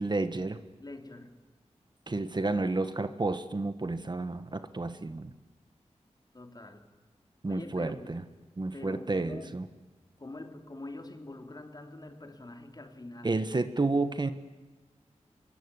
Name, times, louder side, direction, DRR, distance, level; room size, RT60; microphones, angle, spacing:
voice 1, 0.0-0.6 2.1-5.3 7.4-8.2 8.6-9.6 13.2-14.3, right 3 dB, 40° right, 10 dB, 1.4 m, -31 dB
voice 2, 0.8-1.4 6.3-6.8 7.5-8.2 8.7-9.5 10.2-13.4, left 2 dB, 35° left, 6 dB, 3.2 m, -44 dB
26.0 x 23.0 x 9.8 m, 1.3 s
wide cardioid pair, 95°, 12 cm